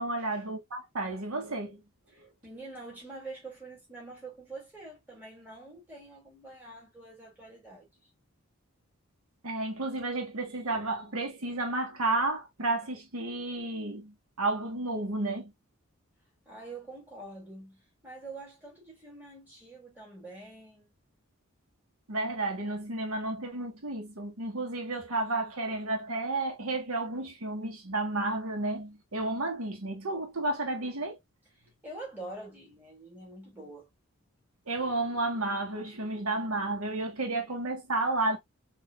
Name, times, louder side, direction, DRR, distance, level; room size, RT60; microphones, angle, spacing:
voice 1, 0.0-1.8 9.4-15.5 22.1-31.2 34.7-38.4, right 2 dB, 80° right, 1.3 m, -32 dB
voice 2, 2.1-8.1 16.5-20.9 31.8-33.9, right 2 dB, 10° right, 2.2 m, -46 dB
4.7 x 2.7 x 2.3 m
head